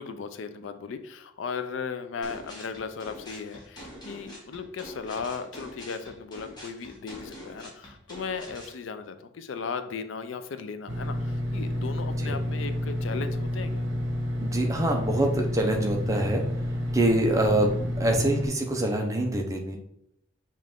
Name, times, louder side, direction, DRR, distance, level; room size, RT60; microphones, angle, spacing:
voice 1, 0.0-13.9, left 5 dB, 75° left, 9 dB, 0.4 m, -36 dB
sound 1, 2.2-8.8, left 1 dB, 20° left, 1.2 m, -45 dB
sound 2, 10.9-18.5, left 1 dB, 65° right, 1.0 m, -29 dB
voice 2, 14.4-16.4 16.9-19.8, right 1 dB, 15° right, 2 dB, 0.6 m, -25 dB
5.5 x 2.5 x 3.6 m, 0.76 s
head